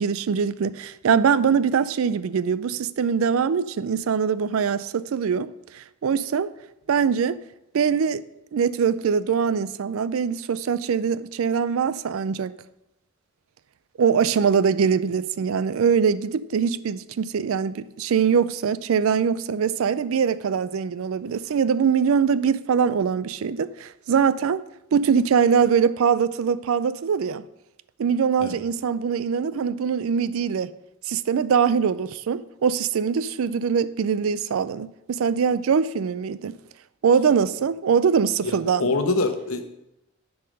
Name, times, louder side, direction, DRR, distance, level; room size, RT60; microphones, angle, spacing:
voice 1, 0.0-6.5 6.9-7.4 7.7-8.2 8.5-12.5 14.0-24.6 24.9-27.4 28.0-30.7 31.1-36.6 37.0-38.9, right 6 dB, 75° right, 0.4 m, -22 dB
voice 2, 38.4-39.6, left 3 dB, 80° left, 0.9 m, -25 dB
9.8 x 4.8 x 5.2 m
head